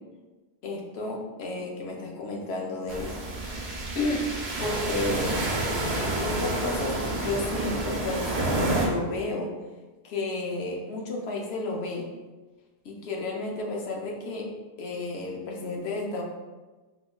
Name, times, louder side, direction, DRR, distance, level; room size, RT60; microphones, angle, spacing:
voice 1, 0.6-3.2 3.9-4.3 4.6-5.4 6.2-9.5 10.0-12.1 12.8-14.5 14.8-16.2, left 2 dB, 75° left, 0 dB, 0.8 m, -32 dB
sound 1, 2.9-8.9, right 2 dB, 75° right, 0.9 m, -29 dB
3.6 x 2.3 x 2.2 m, 1.2 s
omnidirectional pair, 1.1 m